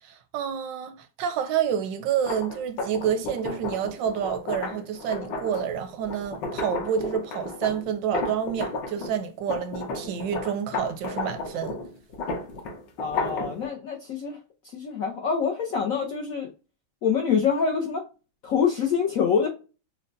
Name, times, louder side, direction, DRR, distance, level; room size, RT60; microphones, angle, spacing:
voice 1, 0.0-11.8, right 8 dB, 75° right, 1.0 m, -29 dB
sound 1, 2.1-9.2 9.5-13.7, left 3 dB, 65° left, 1.5 m, -33 dB
voice 2, 13.0-14.4 14.7-16.5 17.0-18.0 18.4-19.5, left 6 dB, 90° left, 0.7 m, -25 dB
6.4 x 2.2 x 2.5 m
omnidirectional pair, 2.3 m